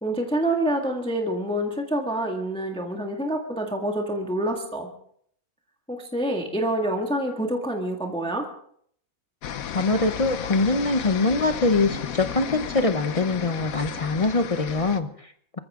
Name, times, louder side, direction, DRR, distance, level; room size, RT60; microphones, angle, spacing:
voice 1, 0.0-4.9 5.9-8.5, right 1 dB, 5° left, 2 dB, 1.7 m, -27 dB
sound 1, 9.4-15.0, left 8 dB, 75° left, 1.3 m, -34 dB
voice 2, 9.7-15.6, left 3 dB, 35° left, 8 dB, 0.6 m, -23 dB
25.0 x 14.0 x 3.6 m, 0.64 s
omnidirectional pair, 1.5 m